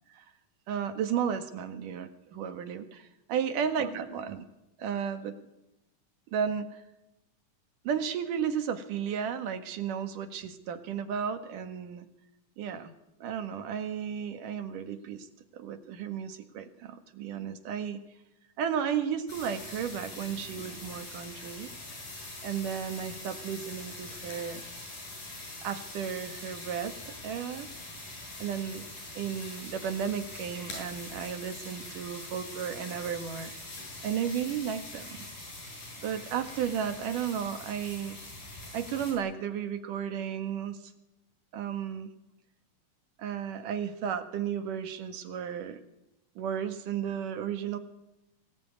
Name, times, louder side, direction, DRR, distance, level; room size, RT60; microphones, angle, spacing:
voice 1, 0.7-4.4 4.8-5.4 6.3-6.8 7.8-12.1 12.6-12.9 13.2-15.3 15.5-18.0 18.6-21.7 22.4-24.7 25.6-27.7 28.4-28.8 29.1-33.6 34.0-35.2 36.0-38.2 38.7-40.8 41.5-42.1 43.2-45.8 46.4-47.8, right 8 dB, 85° right, 9 dB, 3.3 m, -33 dB
sound 1, 19.3-39.1, left 2 dB, 85° left, 9.7 m, -43 dB
23.5 x 19.5 x 9.5 m, 0.90 s
omnidirectional pair, 3.6 m